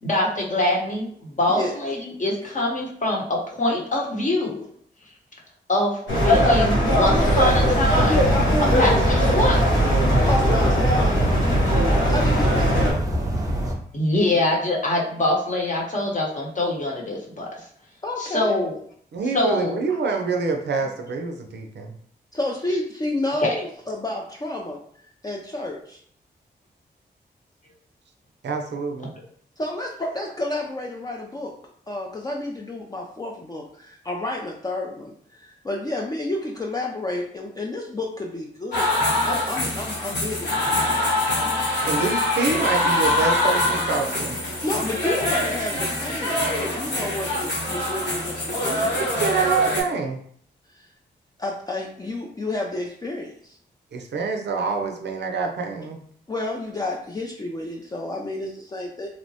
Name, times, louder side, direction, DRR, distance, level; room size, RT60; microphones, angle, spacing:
voice 1, 0.0-4.6 5.7-8.3 8.6-9.7 13.9-17.5 18.2-18.7 19.3-19.8 23.4-23.6, left 1 dB, 45° left, -2 dB, 0.9 m, -24 dB
sound 1, 6.1-12.9, equal, 90° left, 0.8 m, -19 dB
sound 2, 7.2-13.7, right 1 dB, 20° right, 0.7 m, -26 dB
voice 2, 10.3-10.9 12.1-12.9 14.3-14.4 18.0-18.6 22.3-24.8 25.2-26.0 29.6-31.5 31.9-39.0 39.2-41.1 42.0-42.1 44.6-49.0 50.8-50.9 51.4-53.6 56.3-59.1, left 2 dB, 20° left, 0 dB, 0.4 m, -30 dB
voice 3, 19.1-21.9 28.4-29.1 41.9-44.4 49.2-50.2 53.9-56.0, right 4 dB, 70° right, 3 dB, 0.5 m, -26 dB
sound 3, 38.7-49.8, left 1 dB, 65° left, 1.0 m, -24 dB
2.9 x 2.0 x 2.7 m, 0.62 s
cardioid pair, 50°, 19 cm